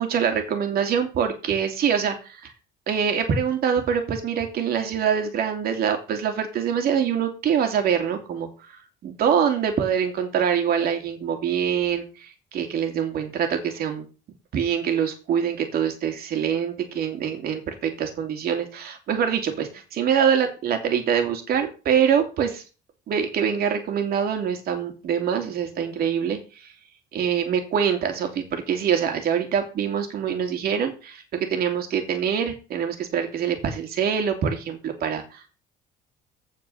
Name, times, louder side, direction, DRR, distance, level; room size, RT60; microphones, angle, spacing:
voice 1, 0.0-2.5 2.9-8.5 9.0-14.0 14.5-22.6 23.1-26.4 27.1-35.5, right 8 dB, 65° right, 5 dB, 2.9 m, -24 dB
15.5 x 5.2 x 5.6 m, 0.34 s
cardioid pair, 110°, 17 cm